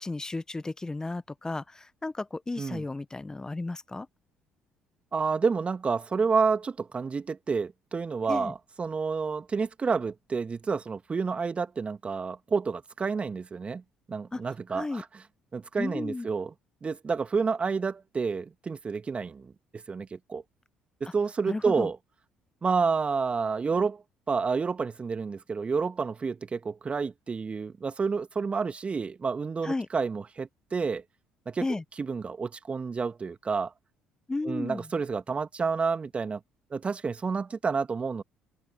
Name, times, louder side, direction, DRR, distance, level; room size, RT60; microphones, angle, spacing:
voice 1, 0.0-4.1 8.3-8.5 14.3-14.4 14.7-15.0 15.8-16.3 21.0-21.1 21.5-21.9 29.6-29.9 31.6-31.8 34.3-34.9, left 2 dB, 20° left, 1.3 m, -33 dB
voice 2, 5.1-13.8 14.1-15.0 15.5-16.5 16.8-19.5 19.9-20.4 21.0-22.0 22.6-24.0 24.3-31.0 31.5-31.7 32.0-33.7 34.4-36.4 36.7-38.2, right 5 dB, 35° right, 2.3 m, -29 dB
hypercardioid pair, 50°, 4 cm